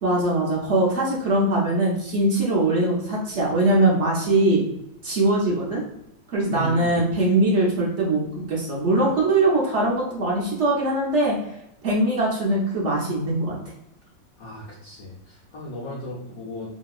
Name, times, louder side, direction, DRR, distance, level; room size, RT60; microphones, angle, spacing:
voice 1, 0.0-4.6 5.0-5.8 6.3-11.4 11.8-13.6, right 2 dB, 60° right, -3 dB, 0.7 m, -21 dB
voice 2, 6.5-7.0 14.4-16.7, equal, 55° left, -7 dB, 1.0 m, -36 dB
2.9 x 2.8 x 2.3 m, 0.84 s
omnidirectional pair, 2.0 m